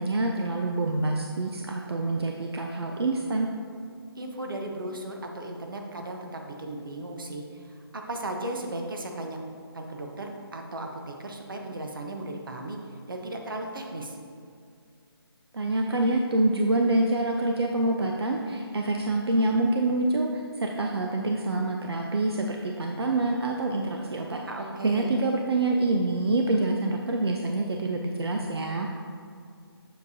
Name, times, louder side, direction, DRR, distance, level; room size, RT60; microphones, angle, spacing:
voice 1, 0.0-3.5 15.5-24.4 24.8-28.9, right 2 dB, 75° right, 2 dB, 0.6 m, -26 dB
voice 2, 4.2-9.4 9.7-12.8 13.1-14.2 24.5-25.1, right 1 dB, 55° right, 2 dB, 1.0 m, -36 dB
7.6 x 6.6 x 2.7 m, 2.3 s
hypercardioid pair, 175°, 13 cm